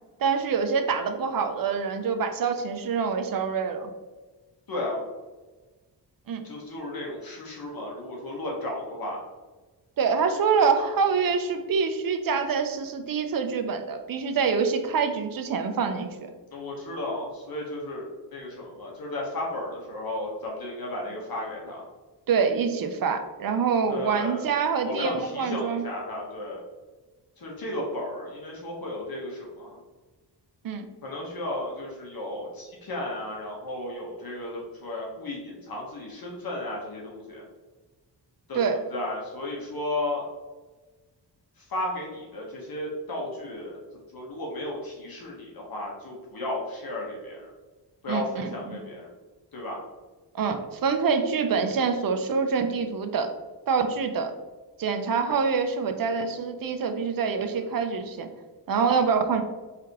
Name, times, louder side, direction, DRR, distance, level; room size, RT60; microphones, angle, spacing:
voice 1, 0.2-3.9 6.3-6.4 10.0-16.3 22.3-25.8 30.6-30.9 38.5-38.8 48.1-48.8 50.3-53.3 53.7-54.3 54.8-58.3 58.7-59.4, right 5 dB, 55° right, 7 dB, 0.6 m, -26 dB
voice 2, 4.7-5.0 6.4-9.2 16.5-21.8 23.9-24.4 24.8-26.6 27.4-29.8 31.0-37.4 38.5-40.2 41.6-43.8 44.1-47.5 48.0-49.1 49.5-49.8 57.5-57.6, left 1 dB, 55° left, -2 dB, 1.2 m, -34 dB
4.7 x 3.4 x 2.9 m, 1.3 s
wide cardioid pair, 100°, 42 cm